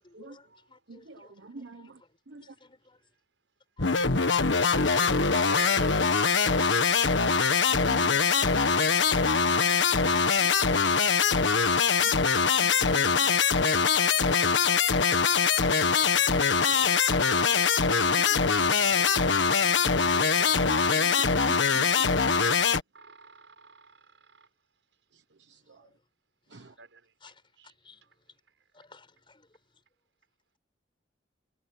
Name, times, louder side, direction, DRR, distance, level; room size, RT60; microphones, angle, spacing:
voice 1, 0.0-2.0 2.3-3.0 9.1-9.2 15.7-17.0 17.4-17.7 25.8-25.9 26.5-26.6 27.2-27.4 27.8-28.0 28.7-29.5, left 2 dB, 30° left, 5.3 m, -56 dB
voice 2, 0.9-1.9 2.3-2.4 5.0-5.3 7.7-8.2 9.0-9.4 10.4-10.7 12.0-12.2 12.6-13.3 15.8-15.9 16.7-16.9 17.3-17.6 18.0-18.7 20.1-22.4 26.5-26.7, right 2 dB, 75° right, 1.1 m, -46 dB
sound 1, 3.8-22.8, left 5 dB, 75° left, 1.5 m, -23 dB
voice 3, 5.2-5.9 22.9-23.9 26.8-27.0 27.6-27.7, right 4 dB, 90° right, 5.9 m, -44 dB
head